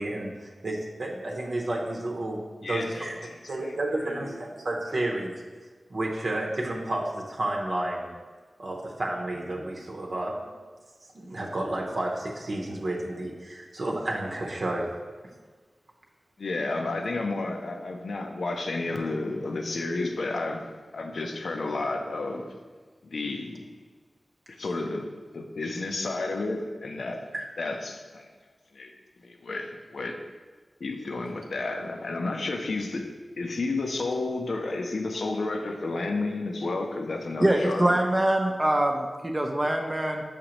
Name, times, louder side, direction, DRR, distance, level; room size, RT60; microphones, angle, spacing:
voice 1, 0.0-3.2 3.5-5.4 5.9-8.1 8.6-10.4 11.1-14.9 27.3-27.4, right 1 dB, 60° right, -1 dB, 0.8 m, -31 dB
voice 2, 2.6-3.8 4.1-4.3 16.4-20.7 20.9-22.5 23.0-23.7 24.5-27.2 27.6-28.3 28.7-28.9 29.2-30.2 30.8-33.1 33.4-38.0, left 3 dB, 80° left, 4 dB, 0.6 m, -31 dB
voice 3, 37.4-40.2, right 1 dB, 20° right, 3 dB, 0.5 m, -24 dB
6.5 x 5.1 x 3.0 m, 1.4 s
wide cardioid pair, 100°, 0 cm